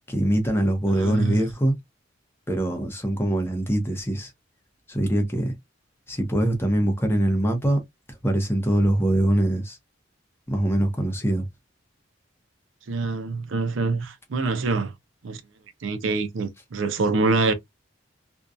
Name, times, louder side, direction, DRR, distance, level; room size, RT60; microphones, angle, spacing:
voice 1, 0.1-1.8 2.5-4.3 4.9-5.5 6.1-7.8 8.2-9.8 10.5-11.4, right 1 dB, 15° left, 0.7 m, -23 dB
voice 2, 0.9-1.4 12.9-14.9 15.2-15.4 15.8-17.5, right 3 dB, 80° right, 0.5 m, -25 dB
2.6 x 2.2 x 2.3 m
head